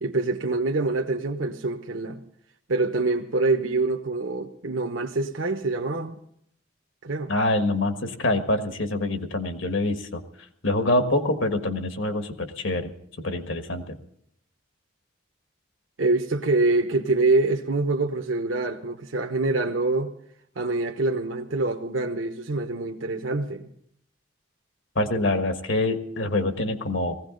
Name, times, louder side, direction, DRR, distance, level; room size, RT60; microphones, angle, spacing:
voice 1, 0.0-2.2 2.7-6.2 7.0-7.3 16.0-20.1 20.6-23.7, right 3 dB, 80° right, 1.0 m, -25 dB
voice 2, 7.3-10.2 10.6-12.9 13.2-14.0 24.9-27.2, left 2 dB, 80° left, 1.6 m, -25 dB
19.0 x 16.0 x 3.9 m
head